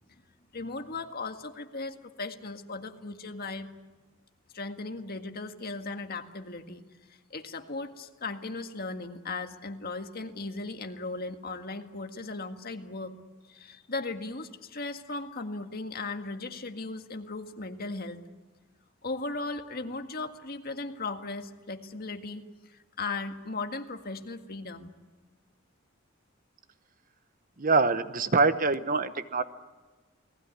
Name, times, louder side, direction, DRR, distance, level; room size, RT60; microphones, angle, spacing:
voice 1, 0.5-3.7 4.5-6.8 7.3-13.2 13.5-18.2 19.0-22.4 22.7-25.0, left 3 dB, 50° left, 6 dB, 1.9 m, -37 dB
voice 2, 27.6-29.4, right 4 dB, 45° right, 12 dB, 1.0 m, -24 dB
29.5 x 19.5 x 9.8 m, 1.3 s
head